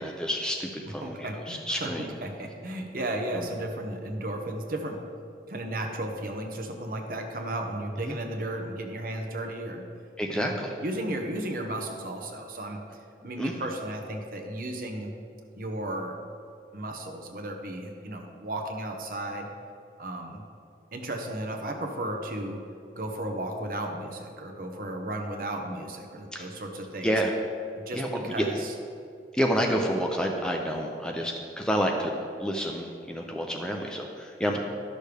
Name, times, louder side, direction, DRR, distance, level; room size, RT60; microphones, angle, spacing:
voice 1, 0.0-2.1 3.3-3.5 8.0-8.2 10.2-10.7 13.4-13.5 26.3-26.5 27.0-27.3 28.0-28.4 29.3-34.6, equal, 5° left, 1 dB, 0.5 m, -29 dB
voice 2, 0.8-5.0 5.5-9.8 10.3-10.5 10.8-12.8 13.2-15.1 15.6-16.2 16.7-19.5 20.0-20.4 20.9-22.6 23.0-27.1 27.8-28.7 34.5-34.6, right 1 dB, 50° right, 3 dB, 0.9 m, -34 dB
12.0 x 6.4 x 3.4 m, 2.4 s
head